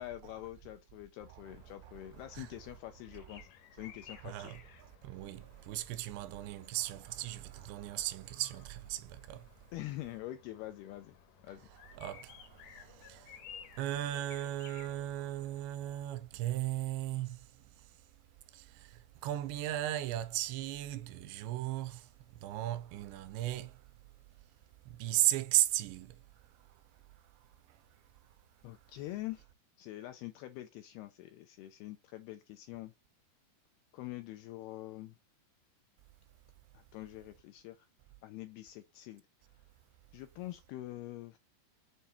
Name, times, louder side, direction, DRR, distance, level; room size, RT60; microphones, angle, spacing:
voice 1, 0.0-4.5 9.7-11.2 11.4-11.7 28.6-29.5 29.8-32.9 33.9-35.1 36.7-37.9 38.2-39.2 40.1-41.4, left 15 dB, 85° left, 2.2 m, -45 dB
sound 1, 1.4-15.6, left 8 dB, 70° left, 2.0 m, -57 dB
voice 2, 1.8-2.5 3.8-9.5 11.7-18.1 18.5-23.9 24.8-26.8 27.1-28.0 28.3-28.4 28.8-28.9, right 14 dB, 85° right, 2.9 m, -37 dB
7.2 x 3.4 x 4.2 m
omnidirectional pair, 5.1 m